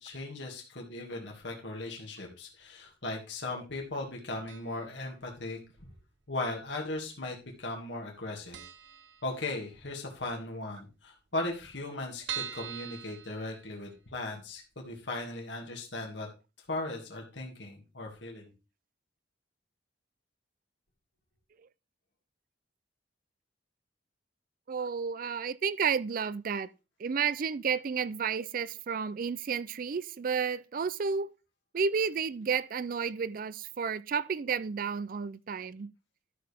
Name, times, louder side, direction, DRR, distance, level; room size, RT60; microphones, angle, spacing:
voice 1, 0.0-5.9 6.3-8.6 9.2-16.3 16.7-18.5, left 2 dB, 70° left, 2.2 m, -38 dB
sound 1, 4.5-5.0 5.3-5.4 6.3-7.0 7.3-7.4 7.7-7.8 8.2-8.3 8.5-9.8 10.2-10.3 10.6-10.7 10.9-11.0 11.5-14.1 14.6-14.7 15.0-15.1, right 9 dB, 60° right, 0.8 m, -42 dB
voice 2, 24.7-26.7 27.0-31.3 31.7-35.9, right 6 dB, 45° right, 0.4 m, -31 dB
12.5 x 6.6 x 3.5 m
head